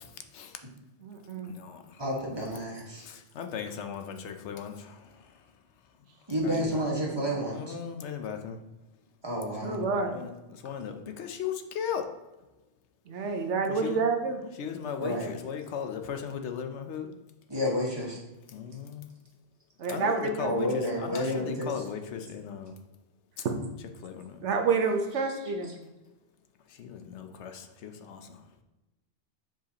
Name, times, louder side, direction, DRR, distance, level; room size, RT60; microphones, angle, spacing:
voice 1, 0.0-0.6 1.5-2.0 2.9-5.1 6.4-6.8 7.5-8.6 9.6-12.1 13.7-14.0 14.6-17.2 18.5-19.1 19.9-22.7 24.0-24.4 26.8-28.3, left 7 dB, 75° left, 6 dB, 0.9 m, -37 dB
voice 2, 1.0-1.5 9.6-10.1 13.1-14.4 19.8-20.7 24.4-25.7, right 4 dB, 80° right, 4 dB, 1.1 m, -28 dB
voice 3, 2.0-3.0 6.3-7.7 9.2-9.8 15.0-15.3 17.5-18.2 20.4-21.8, equal, 20° right, -3 dB, 1.4 m, -30 dB
7.2 x 4.9 x 2.8 m, 1.1 s
omnidirectional pair, 1.2 m